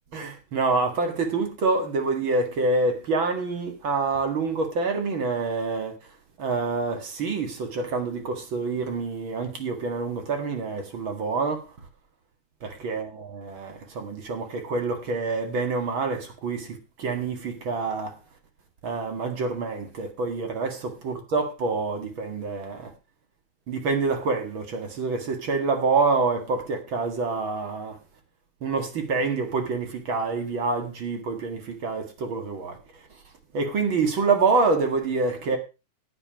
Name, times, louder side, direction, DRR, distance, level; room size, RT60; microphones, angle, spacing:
voice 1, 0.1-6.0 6.4-11.7 12.6-18.2 18.8-22.9 23.7-28.0 28.6-32.8 33.5-35.6, right 3 dB, 45° right, 2.2 m, -27 dB
11.0 x 8.6 x 4.9 m
omnidirectional pair, 3.7 m